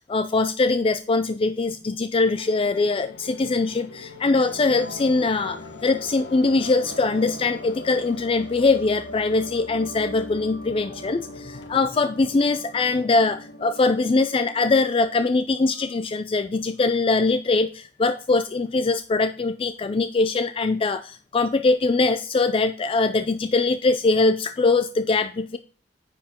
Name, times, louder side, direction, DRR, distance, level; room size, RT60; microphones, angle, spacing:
voice 1, 0.1-25.6, left 3 dB, 30° left, 10 dB, 0.4 m, -22 dB
sound 1, 2.2-15.1, left 1 dB, 75° left, 1.2 m, -40 dB
9.9 x 5.0 x 3.6 m, 0.39 s
head